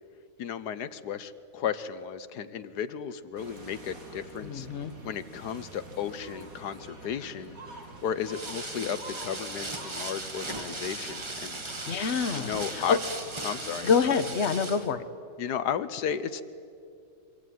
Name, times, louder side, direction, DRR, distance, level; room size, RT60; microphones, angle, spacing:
voice 1, 0.4-4.7 5.0-7.6 8.0-11.6 12.3-13.0 13.4-13.9 15.4-16.4, left 8 dB, 85° left, 12 dB, 1.5 m, -34 dB
sound 1, 3.4-14.2, right 2 dB, 60° right, 3.2 m, -47 dB
voice 2, 4.4-4.9 11.9-13.0 13.8-15.0, left 6 dB, 45° left, 10 dB, 1.3 m, -26 dB
sound 2, 8.2-14.9, right 2 dB, 20° right, 1.2 m, -38 dB
25.0 x 24.0 x 9.3 m, 2.5 s
omnidirectional pair, 1.7 m